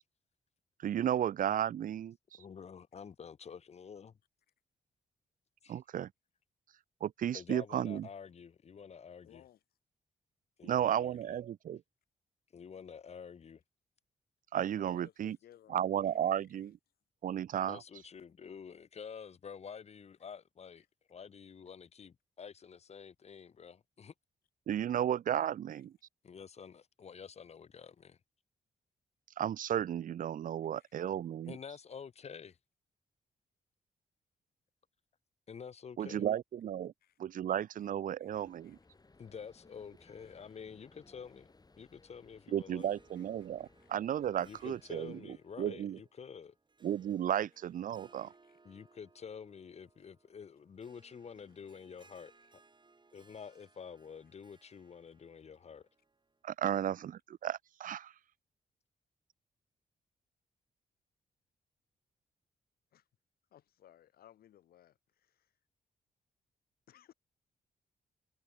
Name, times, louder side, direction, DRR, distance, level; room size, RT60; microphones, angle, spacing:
voice 1, 0.8-2.2 5.7-6.1 7.0-8.1 10.6-11.8 14.5-15.4 15.7-16.8 17.2-17.8 24.7-25.9 29.4-31.6 36.0-36.9 37.2-38.8 42.5-46.0 46.8-48.3 56.4-58.1, right 10 dB, 60° right, 0.5 m, -34 dB
voice 2, 2.4-4.1 5.6-5.8 7.3-9.4 10.6-11.4 12.5-13.6 17.6-24.1 26.2-28.2 31.5-32.6 35.5-36.3 39.2-41.5 41.8-42.9 44.4-46.5 48.6-52.6 53.1-55.8, left 6 dB, 45° left, 0.7 m, -49 dB
voice 3, 9.2-9.6 14.8-16.7 17.5-17.6 20.8-20.9 25.7-25.8 30.8-31.1 37.0-37.2 38.2-38.3 38.6-38.8 43.1-43.2 43.8-43.9 48.1-48.6 62.9-63.0 63.5-65.5 66.9-67.1, left 11 dB, 85° left, 2.2 m, -61 dB
sound 1, 38.3-45.2, left 3 dB, 25° left, 2.2 m, -63 dB
Harp, 42.7-56.4, right 3 dB, 30° right, 7.4 m, -66 dB
cardioid pair, 70°, 15 cm